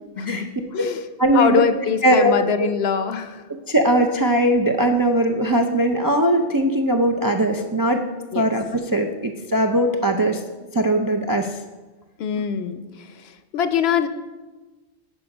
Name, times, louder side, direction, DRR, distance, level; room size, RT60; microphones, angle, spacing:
voice 1, 0.2-1.0 1.3-3.5 8.3-8.5 12.2-14.1, left 7 dB, 70° left, 11 dB, 0.8 m, -24 dB
voice 2, 1.2-1.6 2.0-2.3 2.6-2.7 3.7-8.0 8.3-10.4 10.7-11.6, right 1 dB, 35° right, 3 dB, 0.3 m, -20 dB
11.0 x 4.8 x 5.4 m, 1.2 s
omnidirectional pair, 1.1 m